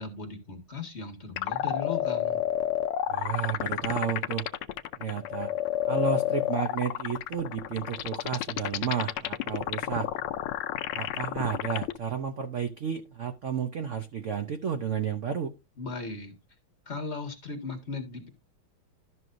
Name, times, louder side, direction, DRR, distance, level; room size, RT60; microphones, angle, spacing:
voice 1, 0.0-2.5 15.8-16.4 16.9-18.3, left 4 dB, 35° left, 1.8 m, -37 dB
sound 1, 1.4-12.0, left 12 dB, 90° left, 1.6 m, -30 dB
voice 2, 3.1-4.5 5.0-5.5 5.9-10.1 10.9-15.5, right 7 dB, 75° right, 0.7 m, -32 dB
12.5 x 6.2 x 2.6 m
omnidirectional pair, 2.3 m